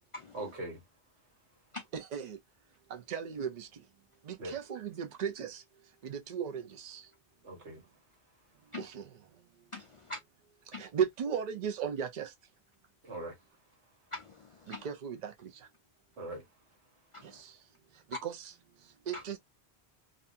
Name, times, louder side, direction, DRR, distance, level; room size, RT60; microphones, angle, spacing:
voice 1, 0.3-0.9 4.4-4.5 7.4-7.9 8.6-8.7 13.0-14.0 16.2-16.5, right 2 dB, 85° right, 1.5 m, -42 dB
voice 2, 1.9-2.4 2.9-3.7 4.3-5.6 6.0-7.0 8.8-9.0 10.8-12.3 14.8-15.5 18.2-18.5 19.1-19.4, right 7 dB, 50° right, 0.6 m, -36 dB
voice 3, 9.7-10.2 10.7-10.8 14.1-14.8 17.1-17.4 19.1-19.2, left 2 dB, 60° left, 0.3 m, -43 dB
2.7 x 2.3 x 2.5 m
omnidirectional pair, 1.1 m